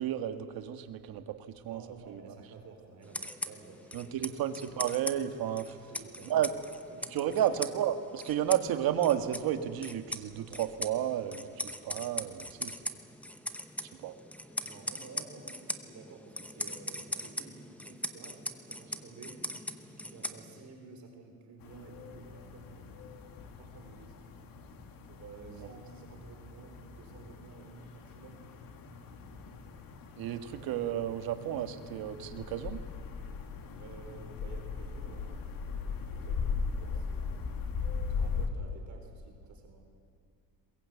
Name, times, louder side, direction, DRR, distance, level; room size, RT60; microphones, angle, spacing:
voice 1, 0.0-1.8 2.1-2.3 3.9-5.7 6.2-6.5 7.1-12.8 13.8-14.2 25.5-25.7 30.2-32.8, right 11 dB, 60° right, 8 dB, 1.7 m, -32 dB
voice 2, 1.6-4.1 5.6-6.4 6.9-7.6 14.6-19.4 19.9-22.8 23.6-24.1 25.1-28.5 33.8-37.4 38.1-39.8, right 4 dB, 45° right, 3 dB, 4.2 m, -52 dB
sound 1, 3.0-20.8, left 1 dB, 5° left, 0.9 m, -41 dB
sound 2, 21.6-38.5, left 5 dB, 55° left, 2.2 m, -39 dB
22.0 x 21.5 x 8.4 m, 2.2 s
cardioid pair, 150°, 40 cm